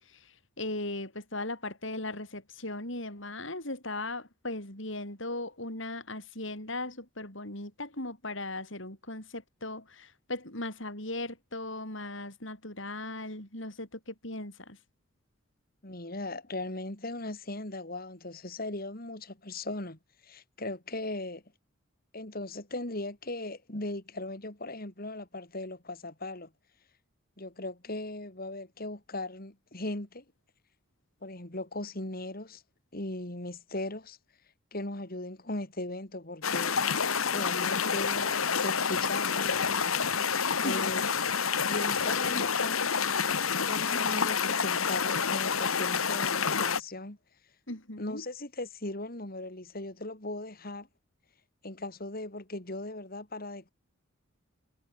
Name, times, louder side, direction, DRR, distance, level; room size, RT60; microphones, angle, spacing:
voice 1, 0.1-14.8 40.6-40.9 47.7-48.2, left 2 dB, 60° left, 7.7 m, -38 dB
voice 2, 15.8-21.4 22.1-26.5 27.4-30.2 31.2-32.6 32.9-34.2 34.7-41.0 41.7-42.8 43.7-47.2 48.0-50.9 51.6-53.7, left 2 dB, 45° left, 2.9 m, -38 dB
sound 1, 36.4-46.8, left 6 dB, 80° left, 2.0 m, -28 dB
head